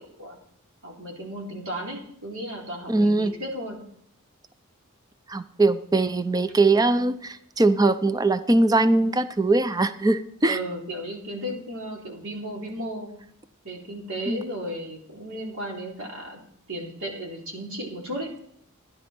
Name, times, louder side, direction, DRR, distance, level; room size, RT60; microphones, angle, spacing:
voice 1, 0.8-3.8 10.5-13.1 13.6-16.4 16.7-18.3, equal, 60° right, -1 dB, 3.7 m, -34 dB
voice 2, 2.9-3.3 5.3-10.6 14.3-14.4, right 2 dB, 15° right, 12 dB, 0.6 m, -21 dB
14.0 x 10.5 x 4.5 m, 0.69 s
head